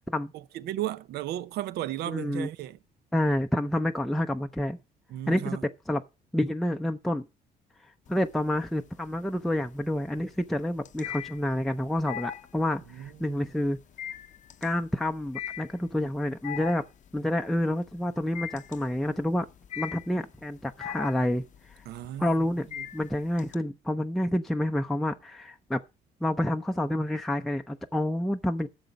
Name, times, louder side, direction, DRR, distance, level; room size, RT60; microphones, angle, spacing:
voice 1, 0.3-2.8 5.1-5.6 12.9-13.4 21.9-22.4 22.8-22.9, right 13 dB, 75° right, 0.6 m, -35 dB
voice 2, 2.1-2.5 3.1-4.8 5.3-5.6 5.9-6.0 6.3-7.3 8.1-13.8 14.6-16.8 17.1-19.5 19.8-21.5 22.2-22.7 22.9-25.8 26.2-28.7, left 1 dB, ahead, 0.5 m, -28 dB
sound 1, 8.1-8.7 9.1-23.5, left 10 dB, 45° left, 0.6 m, -40 dB
11.5 x 7.0 x 5.2 m
cardioid pair, 110°, 17 cm